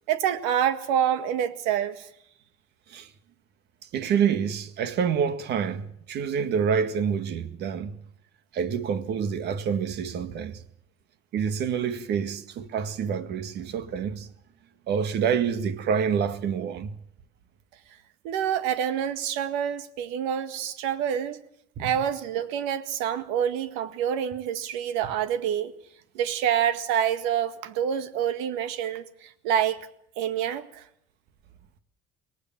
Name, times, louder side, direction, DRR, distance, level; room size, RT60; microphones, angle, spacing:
voice 1, 0.1-2.1 18.2-21.4 21.8-25.7 26.1-29.8 30.2-30.8, right 9 dB, 85° right, 1.8 m, -27 dB
voice 2, 3.9-8.0 8.5-10.6 11.3-14.3 14.9-16.9 21.8-21.9, right 7 dB, 65° right, 2.0 m, -27 dB
23.5 x 18.0 x 7.4 m
supercardioid pair, 90°, 19 cm